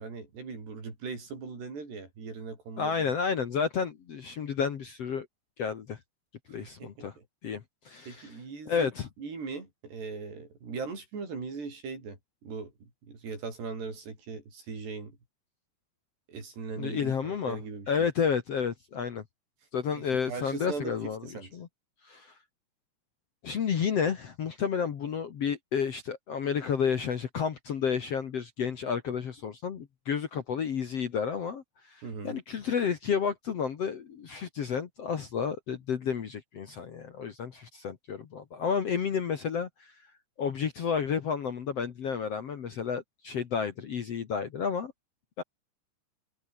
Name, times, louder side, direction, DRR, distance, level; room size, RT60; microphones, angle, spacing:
voice 1, 0.0-3.0 6.5-7.1 8.1-8.9 9.2-15.2 16.3-17.9 19.9-21.6 32.0-32.4, right 4 dB, 85° right, 9.6 m, -40 dB
voice 2, 2.8-5.3 5.6-6.0 6.5-7.2 7.4-8.4 8.7-9.1 16.8-17.6 17.9-19.2 19.7-21.2 21.5-21.7 22.0-22.3 23.4-40.0 40.4-44.9 45.4-45.5, left 6 dB, 50° left, 2.0 m, -31 dB
omnidirectional pair, 4.7 m